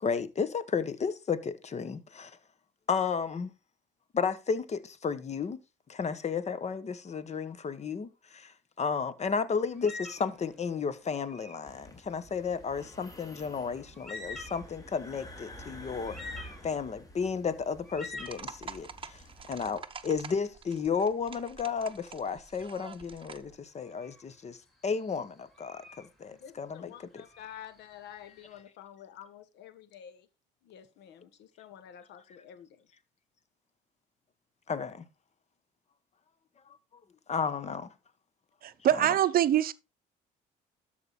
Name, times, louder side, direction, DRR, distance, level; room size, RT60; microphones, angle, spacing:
voice 1, 0.0-2.4 2.9-3.5 4.1-5.6 5.9-16.2 16.6-19.2 19.5-24.6 24.8-27.2 34.7-35.0 37.3-37.9, left 6 dB, 40° left, 1.3 m, -33 dB
sound 1, 9.7-10.4 11.2-11.7 13.6-13.7 13.9-14.8 15.4-15.5 16.0-16.9 17.8-18.5 21.8-22.1 22.8-23.1 23.8-24.2 24.8-26.1 27.2-28.3, left 3 dB, ahead, 3.8 m, -45 dB
sound 2, 11.7-19.8, equal, 20° left, 3.0 m, -50 dB
sound 3, 18.2-23.5, right 5 dB, 30° right, 1.0 m, -47 dB
voice 2, 26.3-30.3 30.6-32.9, left 10 dB, 70° left, 1.4 m, -49 dB
voice 3, 38.6-39.7, right 11 dB, 55° right, 0.7 m, -24 dB
13.0 x 5.0 x 4.1 m
supercardioid pair, 75°, 18 cm